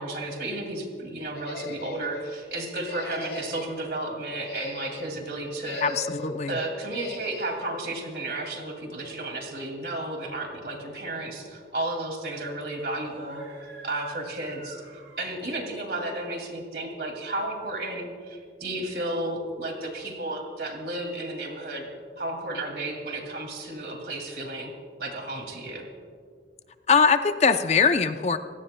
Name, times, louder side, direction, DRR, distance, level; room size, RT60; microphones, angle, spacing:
voice 1, 0.0-5.9 6.5-13.4 13.8-14.8 15.2-21.9 22.2-24.7 25.0-25.9, right 2 dB, 60° right, 3 dB, 2.4 m, -33 dB
sound 1, 1.3-2.3 2.8-3.8 4.3-5.1 5.6-6.4 6.9-7.6, left 3 dB, 75° left, 1.7 m, -39 dB
voice 2, 5.8-6.6 26.9-28.4, left 5 dB, 40° left, 9 dB, 0.5 m, -21 dB
Screaming, 13.0-15.8, right 3 dB, 85° right, 3.1 m, -48 dB
27.0 x 16.5 x 2.2 m, 2.1 s
head